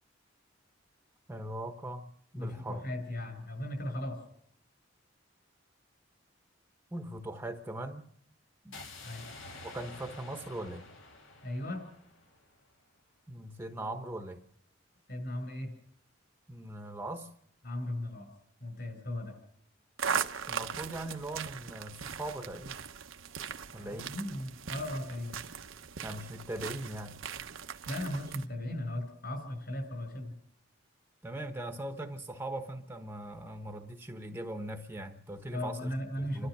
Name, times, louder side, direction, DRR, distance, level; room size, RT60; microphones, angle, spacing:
voice 1, 1.3-2.1 2.3-2.8 6.9-8.0 8.6-8.8 9.6-10.8 13.3-14.4 16.5-17.3 20.5-22.8 23.7-24.1 26.0-27.2 31.2-35.9 36.2-36.5, right 1 dB, 10° right, 6 dB, 1.0 m, -40 dB
voice 2, 2.3-4.2 9.0-9.3 11.4-11.9 15.1-15.7 17.6-18.3 18.6-19.4 23.8-25.5 27.9-30.3 35.5-36.5, left 1 dB, 55° left, 5 dB, 7.5 m, -37 dB
sound 1, 8.7-12.8, left 2 dB, 75° left, 2.3 m, -49 dB
sound 2, 20.0-28.5, right 7 dB, 80° right, 1.0 m, -39 dB
30.0 x 13.0 x 6.7 m, 0.71 s
head